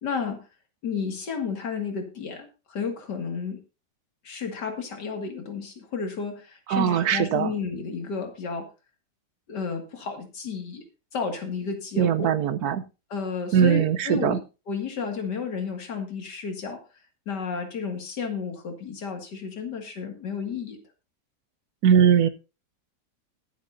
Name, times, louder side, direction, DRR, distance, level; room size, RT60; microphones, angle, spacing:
voice 1, 0.0-0.4 0.8-3.6 4.2-8.7 9.5-10.8 11.1-12.3 13.1-14.4 14.7-16.8 17.3-20.8, left 5 dB, 90° left, 5 dB, 2.7 m, -32 dB
voice 2, 6.7-7.5 12.0-12.8 13.5-14.4 21.8-22.3, right 8 dB, 70° right, 13 dB, 1.2 m, -20 dB
21.0 x 7.4 x 2.6 m, 0.30 s
omnidirectional pair, 1.8 m